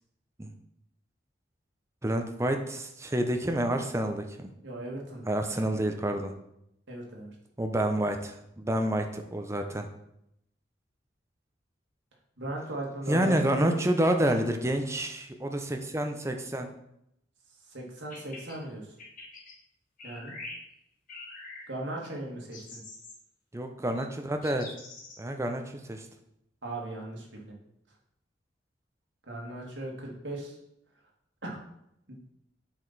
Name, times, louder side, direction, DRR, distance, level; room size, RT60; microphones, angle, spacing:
voice 1, 2.0-4.5 5.3-6.3 7.6-9.9 13.1-16.7 23.5-24.7 25.2-25.6 25.9-26.1, right 1 dB, 15° right, 5 dB, 0.7 m, -28 dB
voice 2, 4.6-5.3 6.9-7.3 12.4-13.7 17.7-18.9 20.0-20.3 21.7-22.8 26.6-27.6 29.3-30.6 31.4-31.6, right 1 dB, 85° right, -1 dB, 1.8 m, -38 dB
sound 1, 18.0-18.6 19.0-19.5 20.0-20.6 21.1-21.7 22.5-23.2 24.0-24.1 24.4-25.2, left 3 dB, 50° left, 1.7 m, -44 dB
7.7 x 4.8 x 4.1 m, 0.79 s
head